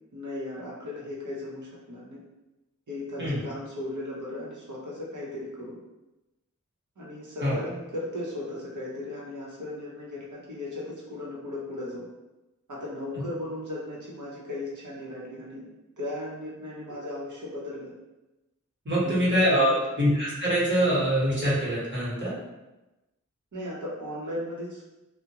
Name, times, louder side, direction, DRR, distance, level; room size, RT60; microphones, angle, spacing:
voice 1, 0.1-2.2 2.9-5.8 7.0-12.0 12.7-15.6 16.0-17.9 18.9-19.2 19.5-19.8 23.5-24.8, left 1 dB, 70° right, -5 dB, 0.8 m, -36 dB
voice 2, 18.8-22.3, equal, 40° right, -8 dB, 1.1 m, -24 dB
2.4 x 2.1 x 2.8 m, 1.0 s
wide cardioid pair, 40°, 31 cm